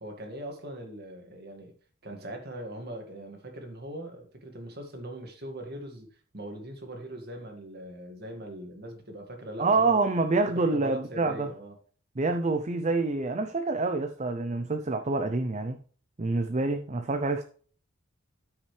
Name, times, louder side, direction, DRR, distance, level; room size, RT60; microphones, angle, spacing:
voice 1, 0.0-1.7 2.0-6.1 6.3-10.0 10.5-11.8, right 1 dB, 50° right, 2.0 m, -41 dB
voice 2, 9.6-11.5 12.2-15.8 16.2-17.4, right 3 dB, 35° right, 0.6 m, -27 dB
13.5 x 5.9 x 3.3 m
head